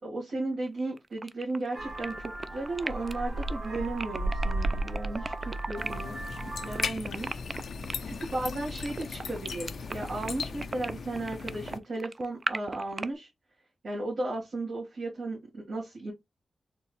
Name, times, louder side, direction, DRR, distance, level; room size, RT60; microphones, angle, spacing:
voice 1, 0.0-7.4 8.0-13.3 13.8-16.1, right 2 dB, 85° right, 1.8 m, -35 dB
sound 1, 0.7-13.1, right 3 dB, 45° right, 0.3 m, -36 dB
Vehicle horn car horn honking, 1.7-6.9, right 2 dB, 60° right, 1.7 m, -34 dB
sound 2, 5.8-11.8, left 5 dB, 85° left, 0.4 m, -38 dB
4.3 x 2.9 x 3.1 m
wide cardioid pair, 95°, 0 cm